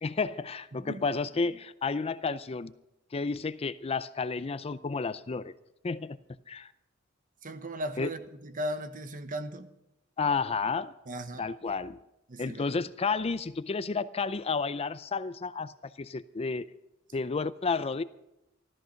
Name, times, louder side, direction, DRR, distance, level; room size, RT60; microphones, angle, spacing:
voice 1, 0.0-2.7 3.1-5.5 5.8-6.2 6.5-6.7 8.0-8.1 10.2-10.9 11.4-12.0 12.4-16.7 17.1-18.0, left 4 dB, 30° left, 0.4 m, -31 dB
voice 2, 0.7-1.0 7.4-9.7 11.1-11.4 12.3-12.7, right 1 dB, 40° right, 1.1 m, -37 dB
14.5 x 13.5 x 5.7 m
head